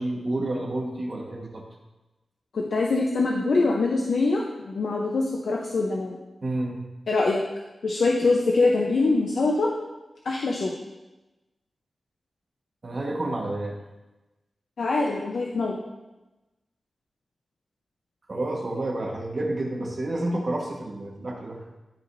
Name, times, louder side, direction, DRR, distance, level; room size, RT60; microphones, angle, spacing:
voice 1, 0.0-1.6 6.4-6.8 12.8-13.8 18.3-21.6, right 1 dB, 35° right, -2 dB, 1.5 m, -29 dB
voice 2, 2.5-6.2 7.1-7.4 7.8-9.7 10.2-10.7 14.8-15.8, left 3 dB, 70° left, -1 dB, 0.8 m, -23 dB
13.5 x 5.1 x 2.7 m, 1.1 s
wide cardioid pair, 155°, 0 cm